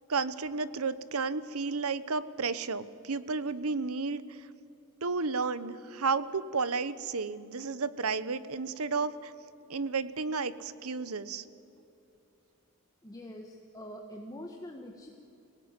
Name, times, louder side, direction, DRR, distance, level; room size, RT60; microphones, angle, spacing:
voice 1, 0.1-4.5 5.0-9.3 9.7-11.4, right 4 dB, 85° right, 15 dB, 1.0 m, -32 dB
voice 2, 13.0-15.1, equal, 15° left, 2 dB, 1.4 m, -44 dB
24.5 x 18.0 x 9.5 m, 2.9 s
head